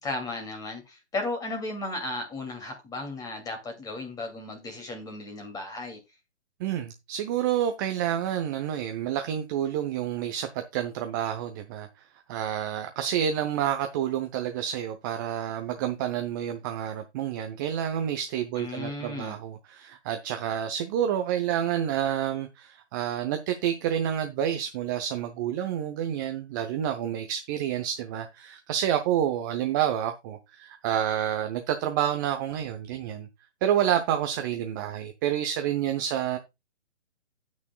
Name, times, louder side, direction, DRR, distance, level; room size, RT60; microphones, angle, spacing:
voice 1, 0.0-6.0 18.5-19.4, left 2 dB, 10° left, 2.5 m, -35 dB
voice 2, 6.6-11.9 12.3-33.3 33.6-36.4, right 10 dB, 15° right, 0.7 m, -29 dB
17.0 x 6.3 x 2.3 m
figure-of-eight pair, 140°, 35 cm